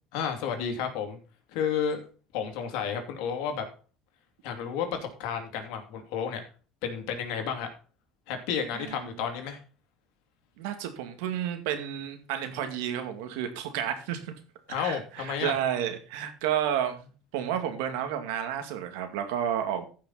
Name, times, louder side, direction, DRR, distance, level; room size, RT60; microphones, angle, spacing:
voice 1, 0.1-1.2 1.5-2.0 2.3-3.6 4.4-6.4 6.8-7.7 8.3-9.6 14.7-15.5, left 7 dB, 80° left, 5 dB, 2.7 m, -31 dB
voice 2, 8.7-9.1 10.6-14.3 14.7-19.8, right 9 dB, 90° right, 7 dB, 2.1 m, -31 dB
15.0 x 5.8 x 4.1 m, 0.37 s
supercardioid pair, 115°, 0 cm